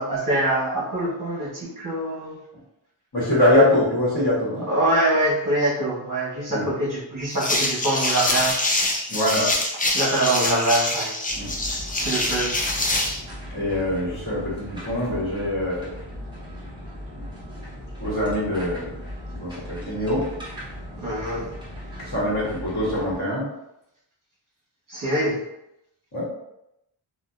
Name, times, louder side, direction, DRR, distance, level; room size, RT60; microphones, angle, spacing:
voice 1, 0.0-2.4 4.7-8.6 9.9-11.2 11.9-12.6 21.0-21.5 24.9-25.4, right 1 dB, 45° right, -5 dB, 1.1 m, -24 dB
voice 2, 3.1-4.6 6.5-6.7 9.1-9.6 11.3-11.5 13.5-15.9 18.0-18.9 19.4-20.3 22.0-23.5 26.1-26.2, left 1 dB, 45° left, -9 dB, 1.2 m, -23 dB
sound 1, 7.3-13.2, left 2 dB, 20° left, 0.4 m, -25 dB
sound 2, 11.3-23.2, equal, 10° right, 0.9 m, -37 dB
2.7 x 2.3 x 2.4 m, 0.83 s
wide cardioid pair, 95°, 46 cm